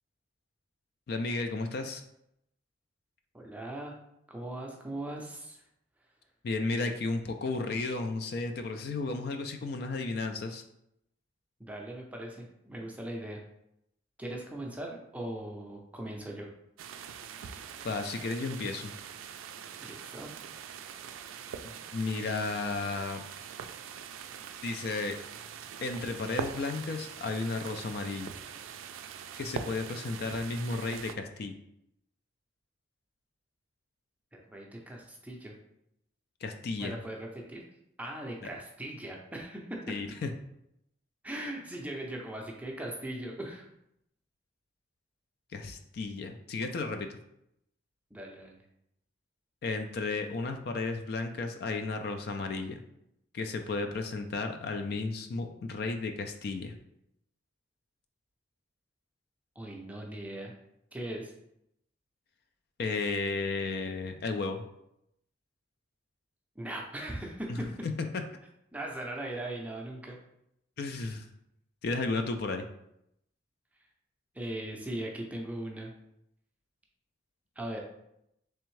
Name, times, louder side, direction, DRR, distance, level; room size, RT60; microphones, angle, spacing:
voice 1, 1.1-2.0 6.4-10.6 17.8-18.9 21.9-23.2 24.6-25.2 25.8-28.3 29.4-31.5 36.4-37.0 39.9-40.3 45.5-47.2 49.6-52.8 53.3-56.8 62.8-64.6 67.5-67.6 67.8-67.9 70.8-71.3 71.8-72.7, left 3 dB, 50° left, 6 dB, 0.3 m, -33 dB
voice 2, 3.3-4.0 4.3-5.6 11.6-13.4 14.2-16.5 19.8-20.3 34.3-35.5 36.8-37.6 38.0-39.9 41.2-43.7 48.1-48.6 59.6-60.5 60.9-61.3 66.6-67.7 68.7-70.2 74.3-75.9 77.6-77.8, right 1 dB, 5° right, 0 dB, 0.5 m, -39 dB
sound 1, 16.8-31.1, right 7 dB, 90° right, 0.3 m, -43 dB
3.4 x 3.4 x 3.1 m, 0.79 s
head